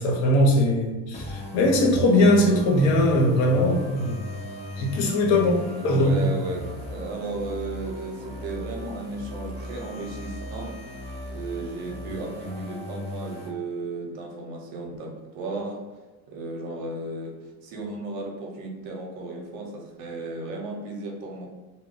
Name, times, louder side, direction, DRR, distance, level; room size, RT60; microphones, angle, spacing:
voice 1, 0.0-4.1 4.8-5.5 5.8-6.3, left 1 dB, 75° left, 0 dB, 0.8 m, -20 dB
sound 1, 1.1-13.5, left 2 dB, 20° left, 0.9 m, -37 dB
voice 2, 5.3-10.7 11.3-15.8 16.3-17.3 17.6-21.5, right 2 dB, 75° right, 0 dB, 0.9 m, -34 dB
2.2 x 2.1 x 3.8 m, 1.2 s
supercardioid pair, 100°, 34 cm